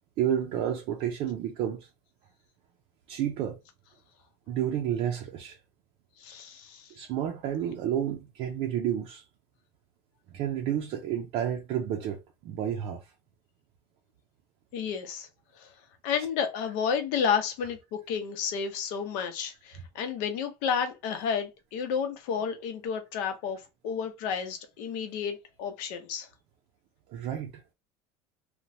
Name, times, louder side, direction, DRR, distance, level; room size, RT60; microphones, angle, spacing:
voice 1, 0.2-1.9 3.1-3.6 4.5-5.6 7.0-9.2 10.3-13.0 27.1-27.6, right 10 dB, 55° right, 0.5 m, -30 dB
voice 2, 6.2-6.9 14.7-15.3 15.6-15.7 16.0-26.3, left 7 dB, 75° left, 0.8 m, -31 dB
3.0 x 2.2 x 2.7 m
cardioid pair, 165°, 12 cm